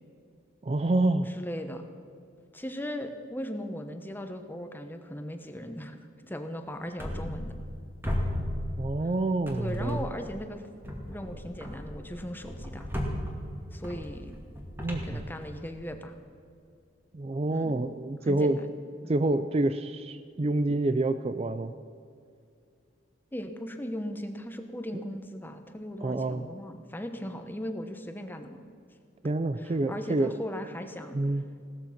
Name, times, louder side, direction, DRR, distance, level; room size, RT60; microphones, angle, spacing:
voice 1, 0.6-1.3 8.8-10.1 14.8-15.2 17.1-18.6 19.1-21.7 26.0-26.5 29.2-30.4 31.1-31.4, right 2 dB, 30° right, 11 dB, 0.4 m, -27 dB
voice 2, 1.3-1.8 2.5-7.5 9.6-10.6 11.1-12.9 13.7-14.3 15.0-16.1 17.5-17.9 18.2-18.6 19.0-19.1 23.3-28.6 29.6-31.2, equal, 10° left, 7 dB, 1.0 m, -38 dB
sound 1, 7.0-7.8 8.0-9.1 9.5-10.3 10.8-15.9, equal, 10° right, 2.4 m, -35 dB
17.5 x 13.5 x 5.9 m, 2.3 s
head